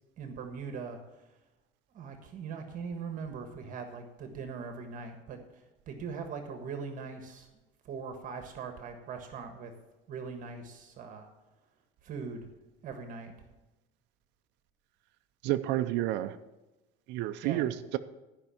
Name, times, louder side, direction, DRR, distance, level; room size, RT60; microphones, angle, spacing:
voice 1, 0.2-1.0 1.9-5.4 5.9-7.5 7.8-9.7 10.1-11.3 12.0-12.5 12.8-13.3 17.4-17.6, right 5 dB, 40° right, 6 dB, 1.5 m, -40 dB
voice 2, 15.4-16.4 17.1-18.0, right 14 dB, 60° right, 8 dB, 0.6 m, -30 dB
13.5 x 5.4 x 7.0 m, 1.1 s
cardioid pair, 135°, 20 cm